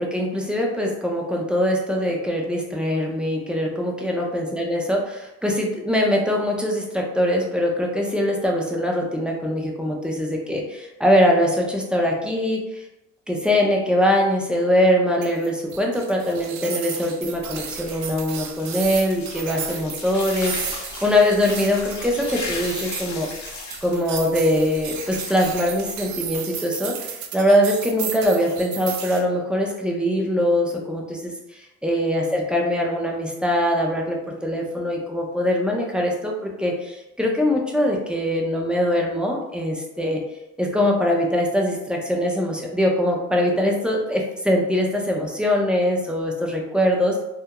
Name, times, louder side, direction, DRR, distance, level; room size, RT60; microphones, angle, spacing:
voice 1, 0.0-12.8 13.3-23.3 23.8-40.2 40.6-47.2, left 1 dB, 5° right, -1 dB, 0.4 m, -22 dB
sound 1, 15.2-29.2, right 7 dB, 70° right, 0.4 m, -34 dB
sound 2, 17.2-26.4, left 3 dB, 65° left, 0.7 m, -37 dB
2.3 x 2.0 x 2.8 m, 0.93 s
cardioid pair, 90°, 30 cm